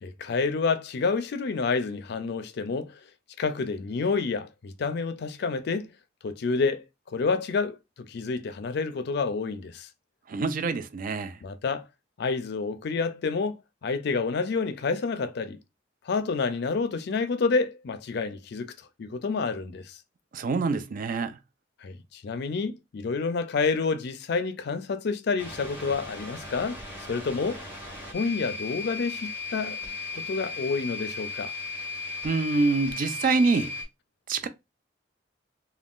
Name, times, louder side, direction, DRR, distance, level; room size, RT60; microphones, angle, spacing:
voice 1, 0.0-3.0 3.4-5.9 6.2-6.8 7.1-9.9 11.4-11.9 12.2-15.6 16.0-18.7 19.0-20.0 21.8-27.7 28.1-31.5, left 4 dB, 60° left, 0.4 m, -29 dB
voice 2, 10.3-11.4 20.3-21.4 32.2-33.7 34.3-34.5, right 4 dB, 50° right, 0.4 m, -26 dB
sound 1, 25.4-33.8, left 3 dB, 10° right, 1.3 m, -36 dB
2.4 x 2.3 x 3.5 m
head